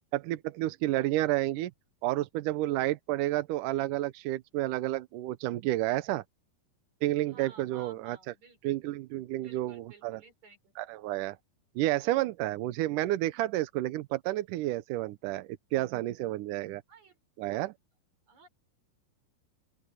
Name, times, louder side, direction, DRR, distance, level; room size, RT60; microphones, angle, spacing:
voice 1, 0.1-1.7 2.0-6.2 7.0-8.2 8.6-10.2 10.8-11.4 11.8-16.8 17.4-17.7, right 16 dB, 75° right, 2.0 m, -30 dB
voice 2, 7.3-8.9 9.3-10.7 16.9-17.2 18.3-18.5, right 5 dB, 50° right, 6.5 m, -55 dB
open air
omnidirectional pair, 4.3 m